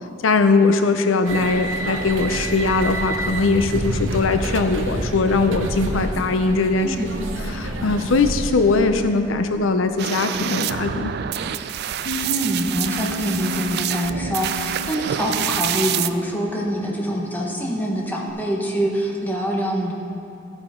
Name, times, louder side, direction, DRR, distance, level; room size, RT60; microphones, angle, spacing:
voice 1, 0.2-7.0 7.5-11.1, left 3 dB, 85° left, 8 dB, 0.6 m, -20 dB
sound 1, 1.3-8.9, right 1 dB, 75° right, 0.9 m, -28 dB
voice 2, 6.8-7.3 12.2-19.9, equal, 10° left, -1 dB, 1.2 m, -25 dB
sound 2, 10.0-16.1, right 10 dB, 55° right, 0.3 m, -27 dB
Bass guitar, 12.1-18.3, left 1 dB, 50° left, 1.4 m, -35 dB
14.5 x 8.8 x 3.7 m, 3.0 s
head